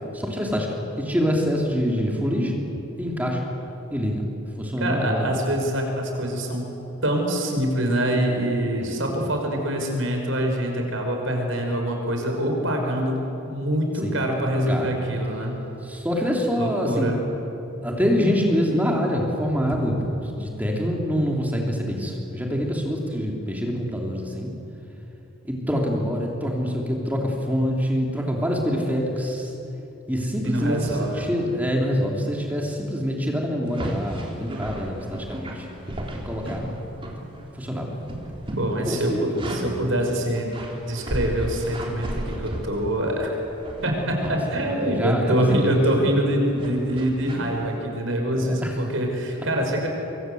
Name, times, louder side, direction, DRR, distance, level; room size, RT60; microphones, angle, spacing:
voice 1, 0.1-2.5 3.0-3.4 3.9-4.2 4.6-5.3 8.8-9.0 14.0-14.2 14.7-14.9 15.8-17.2 17.8-24.5 25.4-29.5 30.1-35.6 36.1-36.7 37.5-37.9 38.8-39.9 44.2-45.3 45.6-45.8 48.3-48.7, equal, 10° right, -1 dB, 3.4 m, -25 dB
voice 2, 4.8-6.6 7.0-13.2 13.5-15.5 16.6-17.2 30.4-31.4 38.6-40.5 40.9-43.3 43.8-49.9, right 1 dB, 75° right, 2 dB, 5.4 m, -25 dB
sound 1, 33.7-37.6 37.8-39.9 40.3-43.1 43.6-44.4 44.9-45.1 46.6-47.5, right 1 dB, 25° right, 3.6 m, -35 dB
27.0 x 24.0 x 8.1 m, 3.0 s
head